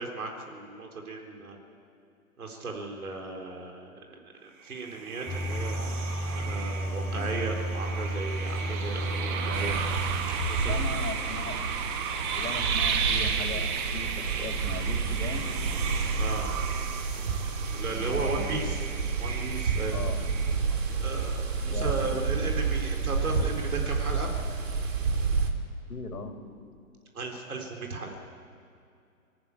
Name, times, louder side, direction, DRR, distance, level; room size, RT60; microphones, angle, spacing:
voice 1, 0.0-1.6 2.4-5.8 6.3-9.8 10.5-11.0 16.2-16.5 17.7-18.8 19.2-20.0 21.0-24.3 27.1-28.1, right 3 dB, 75° right, 2 dB, 4.2 m, -35 dB
sound 1, 4.7-20.9, right 7 dB, 20° right, 0.9 m, -34 dB
sound 2, 5.3-16.5, equal, 5° left, 2.6 m, -35 dB
sound 3, 9.5-25.5, right 4 dB, 60° right, 3.2 m, -30 dB
voice 2, 10.6-15.5 17.9-18.7 19.9-20.3 20.7-20.8 21.7-21.9 22.4-22.5 25.9-26.4, left 4 dB, 90° left, 3 dB, 3.5 m, -39 dB
25.0 x 14.5 x 8.6 m, 2.4 s
hypercardioid pair, 145°, 43 cm